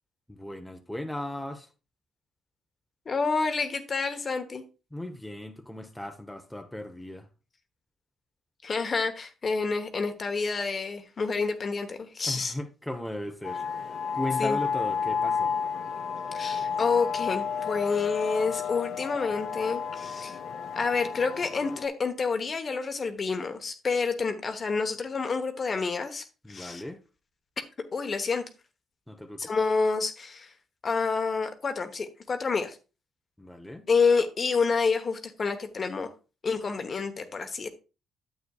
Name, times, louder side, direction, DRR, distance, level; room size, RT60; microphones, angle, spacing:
voice 1, 0.3-1.7 4.9-7.3 12.2-13.6 14.1-15.5 26.4-27.0 29.1-29.5 33.4-33.9, left 1 dB, 5° left, 0.9 m, -37 dB
voice 2, 3.1-4.6 8.6-12.5 14.3-14.6 16.4-20.4 20.7-26.8 27.9-28.4 29.4-30.5 30.8-32.8 33.9-36.1 36.4-37.7, left 4 dB, 40° left, 1.1 m, -28 dB
sound 1, 13.4-21.9, left 6 dB, 65° left, 0.7 m, -31 dB
9.5 x 7.9 x 2.4 m
cardioid pair, 90°, 0 cm